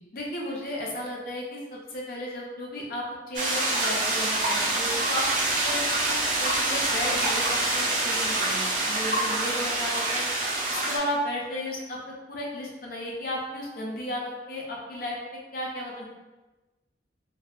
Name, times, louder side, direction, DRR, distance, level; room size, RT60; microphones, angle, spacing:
voice 1, 0.1-5.2 5.6-10.3 10.7-12.0 12.3-15.2 15.5-16.0, left 1 dB, 50° left, -2 dB, 0.6 m, -34 dB
sound 1, 3.4-11.0, right 2 dB, 45° right, 0.5 m, -26 dB
2.7 x 2.5 x 2.3 m, 1.1 s
head